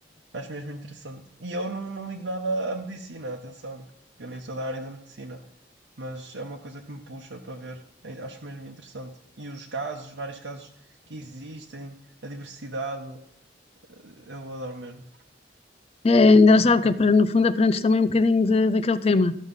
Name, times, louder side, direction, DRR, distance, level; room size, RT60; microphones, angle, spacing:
voice 1, 0.3-3.9 4.2-5.4 6.0-9.1 9.4-10.7 11.1-12.0 12.2-13.2 13.9-15.0, right 2 dB, 80° right, 0 dB, 1.0 m, -35 dB
voice 2, 16.0-19.4, left 3 dB, 35° left, 13 dB, 0.4 m, -18 dB
13.5 x 6.4 x 5.5 m, 0.69 s
head